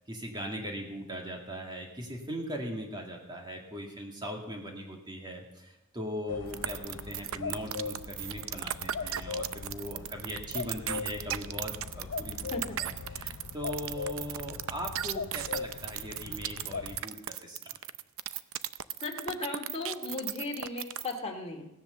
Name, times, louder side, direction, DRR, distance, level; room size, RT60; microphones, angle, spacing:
voice 1, 0.1-12.4 12.8-17.8, equal, 20° right, 0 dB, 2.2 m, -39 dB
sound 1, 6.3-17.0, left 5 dB, 60° left, 0.5 m, -40 dB
sound 2, 6.5-21.2, right 12 dB, 65° right, 0.6 m, -36 dB
voice 2, 19.0-21.7, left 3 dB, 30° left, 1 dB, 2.4 m, -36 dB
17.0 x 10.5 x 6.8 m, 0.90 s
head